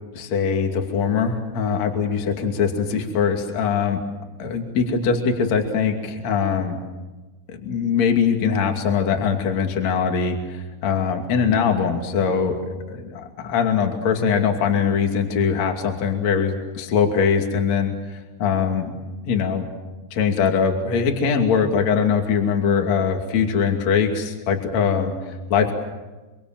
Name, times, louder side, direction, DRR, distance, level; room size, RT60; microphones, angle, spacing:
voice 1, 0.1-4.0 4.4-6.8 7.5-12.6 12.9-19.0 19.3-19.7 20.1-25.1 25.5-25.7, left 6 dB, 45° left, 3 dB, 3.3 m, -22 dB
26.5 x 26.0 x 7.5 m, 1.2 s
omnidirectional pair, 5.2 m